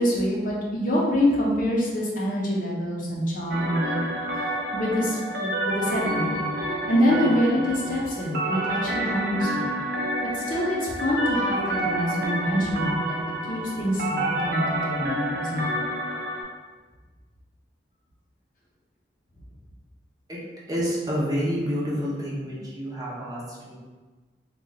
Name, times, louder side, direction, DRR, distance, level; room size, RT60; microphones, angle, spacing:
voice 1, 0.0-4.0 4.7-6.5 6.9-9.7 10.3-13.2 13.5-15.6, equal, 50° left, -4 dB, 0.7 m, -25 dB
sound 1, 3.5-16.4, right 1 dB, 65° right, 0.6 m, -29 dB
voice 2, 20.7-23.8, equal, 20° right, -6 dB, 0.7 m, -28 dB
2.8 x 2.3 x 3.9 m, 1.3 s
head